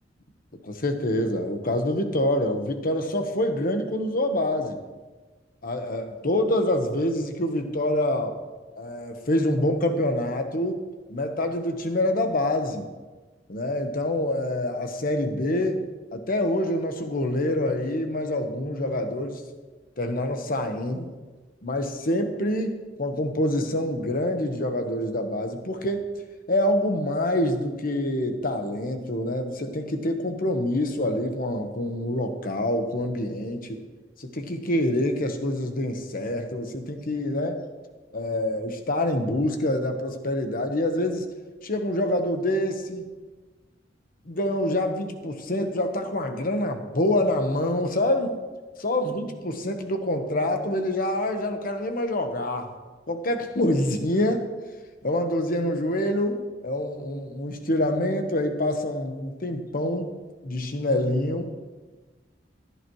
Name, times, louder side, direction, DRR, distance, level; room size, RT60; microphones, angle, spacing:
voice 1, 0.6-4.8 5.6-8.4 8.8-10.8 11.1-12.9 13.5-15.8 16.1-19.4 20.0-21.1 21.6-26.1 26.5-33.8 34.2-37.7 38.1-41.2 41.6-43.0 44.2-48.4 48.8-52.7 53.1-54.5 55.0-60.1 60.4-61.5, left 1 dB, 50° left, 6 dB, 1.2 m, -26 dB
15.5 x 11.5 x 3.1 m, 1.3 s
head